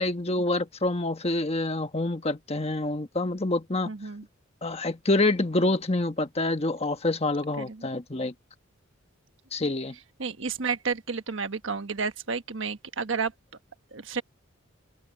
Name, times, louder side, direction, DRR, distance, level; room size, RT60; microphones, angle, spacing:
voice 1, 0.0-3.9 4.6-8.3 9.5-9.9, left 2 dB, 30° left, 1.3 m, -27 dB
voice 2, 3.8-4.3 7.6-7.9 9.6-9.7 10.2-13.3 13.9-14.2, right 5 dB, 65° right, 1.3 m, -31 dB
open air
head